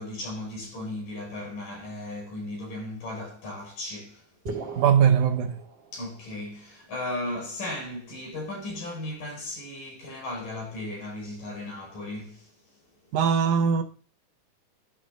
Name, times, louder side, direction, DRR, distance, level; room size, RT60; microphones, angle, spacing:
voice 1, 0.0-4.3 5.9-12.5, left 1 dB, 85° left, 7.4 m, -36 dB
sound 1, 4.5-6.4, right 3 dB, 35° right, 2.7 m, -39 dB
voice 2, 4.8-5.6 13.1-13.8, right 7 dB, 80° right, 2.4 m, -21 dB
11.5 x 3.8 x 6.4 m
omnidirectional pair, 3.7 m